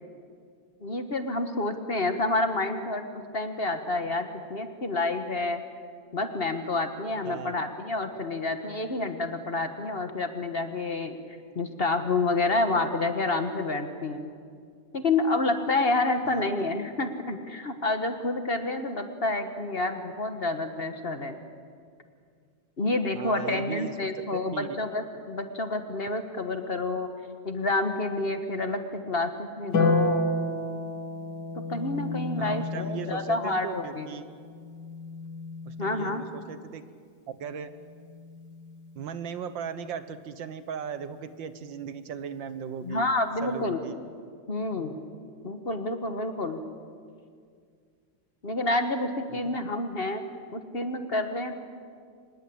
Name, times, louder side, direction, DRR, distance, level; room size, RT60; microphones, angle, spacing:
voice 1, 0.8-5.6 6.1-11.2 11.5-14.3 14.9-21.4 22.8-27.1 27.4-30.2 31.7-34.1 35.8-36.2 42.8-43.8 44.5-45.0 45.4-46.6 48.4-50.2 50.5-51.5, left 2 dB, 35° left, 7 dB, 1.4 m, -29 dB
voice 2, 7.2-7.6 16.3-16.5 23.2-24.1 24.5-24.8 32.4-34.2 35.7-36.8 37.3-37.7 39.0-43.1 43.4-43.9 49.3-49.6, right 7 dB, 90° right, 12 dB, 1.9 m, -37 dB
Harp, 29.7-36.2 37.9-38.9, left 2 dB, 75° left, 2.5 m, -31 dB
25.0 x 21.0 x 8.7 m, 2.2 s
omnidirectional pair, 2.0 m